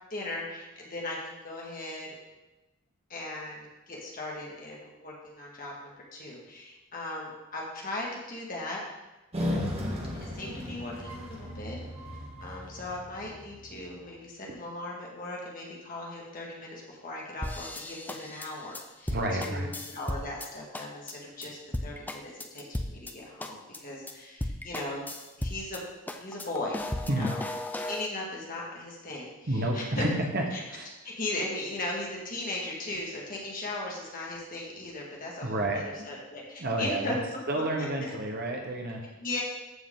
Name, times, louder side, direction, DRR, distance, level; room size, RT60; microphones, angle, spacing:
voice 1, 0.1-2.1 3.1-8.8 10.1-11.8 12.4-19.2 19.4-25.0 25.4-25.9 26.2-27.4 27.9-30.1 30.5-30.6 31.0-37.2 37.5-38.1 39.2-39.4, left 2 dB, 40° left, -2 dB, 1.9 m, -38 dB
sound 1, 9.3-13.9, left 1 dB, 25° right, 1.5 m, -35 dB
sound 2, 17.4-20.5 20.7-21.1 21.4-21.5 21.7-23.1 23.4-23.8 24.1-24.2 24.4-25.8 26.1-28.1, left 1 dB, 10° left, 0.4 m, -35 dB
voice 2, 19.1-19.7 27.1-27.3 29.5-30.9 35.4-35.8 36.6-37.2 37.5-39.0, right 1 dB, 45° right, 2 dB, 1.1 m, -30 dB
14.0 x 4.7 x 3.8 m, 1.0 s
head